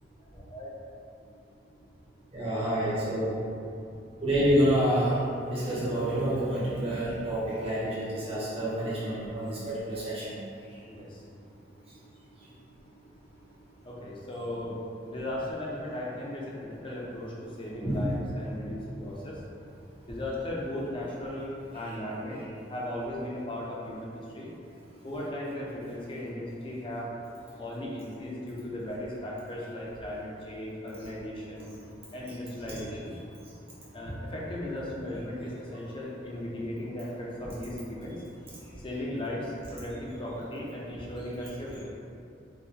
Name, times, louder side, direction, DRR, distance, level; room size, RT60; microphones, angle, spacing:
voice 1, 0.3-0.7 10.9-11.2 13.8-14.8 15.0-19.4 20.1-22.4 22.7-24.5 25.0-27.1 27.6-31.7 32.1-33.2 33.9-38.2 38.8-41.8, left 1 dB, 30° left, -5 dB, 0.5 m, -37 dB
voice 2, 2.3-3.4 4.2-5.2 5.5-10.4 17.8-18.1 18.6-18.7 31.6-31.7, equal, 30° right, -10 dB, 1.0 m, -28 dB
2.8 x 2.5 x 3.3 m, 2.5 s
head